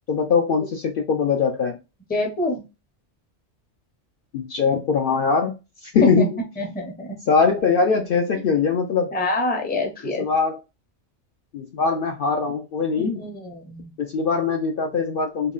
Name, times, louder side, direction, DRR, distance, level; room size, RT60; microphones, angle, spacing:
voice 1, 0.1-1.8 4.3-5.5 5.8-6.4 7.3-9.1 10.2-10.6 11.5-13.2 14.0-15.5, left 5 dB, 60° left, 2 dB, 0.6 m, -21 dB
voice 2, 2.1-2.6 6.0-6.2 6.6-7.2 9.1-10.2 13.0-13.9, left 2 dB, 10° left, 2 dB, 0.5 m, -26 dB
3.6 x 2.2 x 2.3 m, 0.27 s
omnidirectional pair, 1.2 m